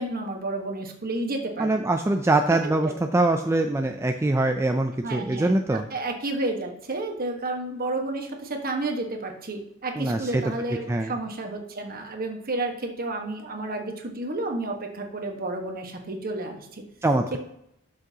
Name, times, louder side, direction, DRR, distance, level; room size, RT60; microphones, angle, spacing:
voice 1, 0.0-1.8 2.6-2.9 5.0-16.8 17.3-17.4, right 2 dB, 45° right, 4 dB, 1.4 m, -31 dB
voice 2, 1.6-5.8 10.0-10.4 10.9-11.1 17.0-17.4, right 2 dB, 15° right, 5 dB, 0.4 m, -23 dB
12.0 x 6.3 x 2.9 m, 0.79 s
head